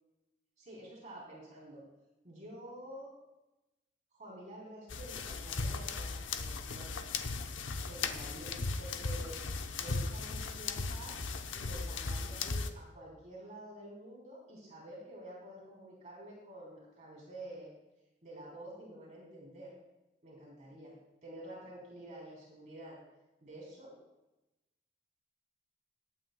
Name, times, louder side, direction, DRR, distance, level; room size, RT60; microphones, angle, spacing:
voice 1, 0.6-1.8 2.2-3.2 4.1-7.0 7.9-9.4 9.8-11.1 11.5-17.7 18.2-19.7 20.2-20.9 21.2-23.0 23.4-24.0, right 1 dB, 40° right, -5 dB, 3.5 m, -49 dB
sound 1, 4.9-12.7, left 4 dB, 80° left, 0.7 m, -37 dB
20.0 x 9.0 x 2.2 m, 0.98 s
head